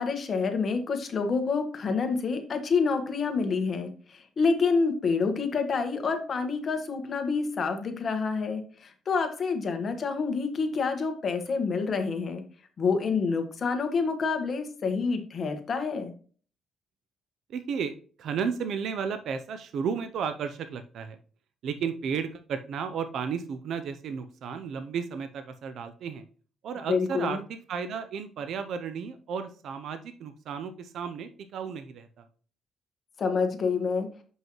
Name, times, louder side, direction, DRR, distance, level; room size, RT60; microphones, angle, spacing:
voice 1, 0.0-12.4 12.8-16.1 26.9-27.4 33.2-34.1, left 4 dB, 45° left, 6 dB, 1.3 m, -28 dB
voice 2, 17.5-21.2 21.6-26.2 26.6-32.3, right 6 dB, 70° right, 9 dB, 0.6 m, -33 dB
7.3 x 5.4 x 3.1 m, 0.41 s
cardioid pair, 90°, 0 cm